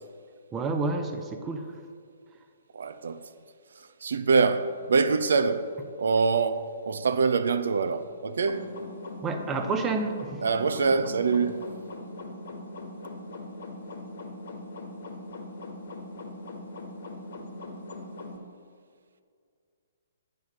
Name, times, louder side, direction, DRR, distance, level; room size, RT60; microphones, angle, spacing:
voice 1, 0.5-1.6 9.2-10.4, right 3 dB, 15° right, 0.6 m, -29 dB
voice 2, 2.7-3.3 3.8-5.7 6.0-8.7 10.4-11.6, right 4 dB, 60° right, 0.5 m, -25 dB
sound 1, 8.4-18.4, left 2 dB, 60° left, 1.2 m, -41 dB
9.2 x 3.6 x 6.7 m
figure-of-eight pair, 125°, 0 cm